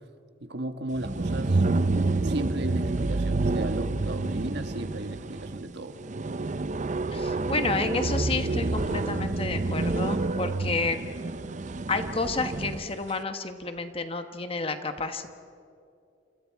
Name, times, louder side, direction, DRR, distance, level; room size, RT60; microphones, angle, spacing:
voice 1, 0.4-1.6 2.2-6.0, right 1 dB, 60° right, 7 dB, 1.4 m, -35 dB
sound 1, 0.9-12.9, right 2 dB, 40° right, 0.6 m, -28 dB
voice 2, 7.1-11.0 11.9-15.3, left 3 dB, 30° left, 8 dB, 1.2 m, -30 dB
29.0 x 26.5 x 4.7 m, 2.5 s
head